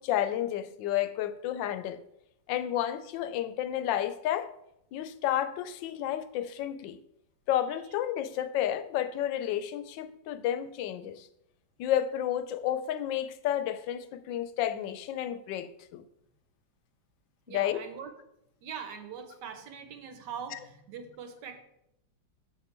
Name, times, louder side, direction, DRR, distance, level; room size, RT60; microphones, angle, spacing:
voice 1, 0.0-2.0 2.5-4.5 4.9-7.0 7.5-11.3 11.8-16.0 17.5-17.8, left 11 dB, 85° left, 12 dB, 1.3 m, -31 dB
voice 2, 17.5-18.1 18.6-21.6, right 7 dB, 70° right, 7 dB, 1.4 m, -42 dB
6.5 x 5.9 x 4.3 m, 0.80 s
omnidirectional pair, 2.0 m